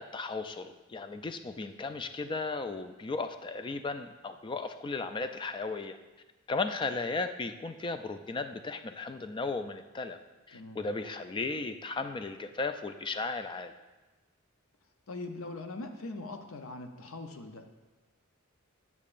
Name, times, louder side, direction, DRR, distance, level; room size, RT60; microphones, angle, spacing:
voice 1, 0.0-6.0 6.5-10.2 10.5-13.7, left 3 dB, 25° left, 9 dB, 0.3 m, -35 dB
voice 2, 10.5-10.8 15.1-17.7, left 2 dB, 70° left, 6 dB, 0.6 m, -41 dB
8.5 x 7.1 x 2.5 m, 1.2 s
head